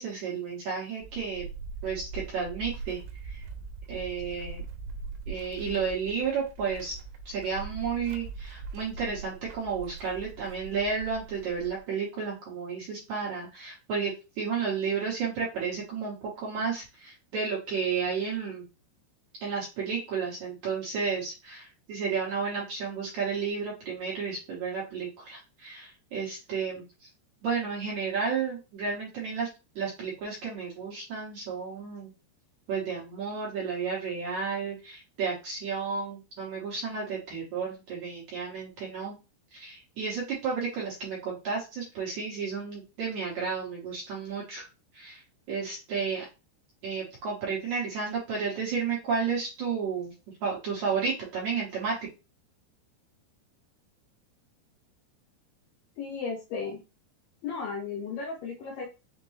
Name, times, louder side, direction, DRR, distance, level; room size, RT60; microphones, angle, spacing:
voice 1, 0.0-1.4 1.8-3.0 3.3-3.5 3.9-4.6 5.3-7.0 7.3-18.6 19.4-27.1 27.4-29.5 29.8-32.1 32.7-39.2 39.5-44.7 44.9-45.2 45.5-46.3 46.8-50.1 50.4-52.0, right 5 dB, 65° right, -5 dB, 2.0 m, -32 dB
sound 1, 1.0-11.8, right 4 dB, 85° right, 2.7 m, -41 dB
voice 2, 56.0-56.8 57.4-58.9, left 5 dB, 80° left, 0 dB, 2.1 m, -35 dB
6.3 x 2.2 x 3.1 m, 0.29 s
omnidirectional pair, 4.8 m